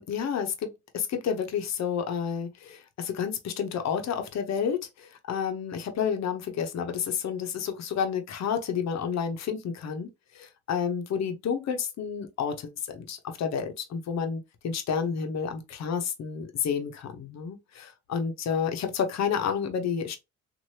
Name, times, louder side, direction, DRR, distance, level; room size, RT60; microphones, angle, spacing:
voice 1, 0.0-20.2, left 7 dB, 60° left, 0.8 m, -30 dB
3.1 x 2.6 x 2.7 m
cardioid pair, 90°, 30 cm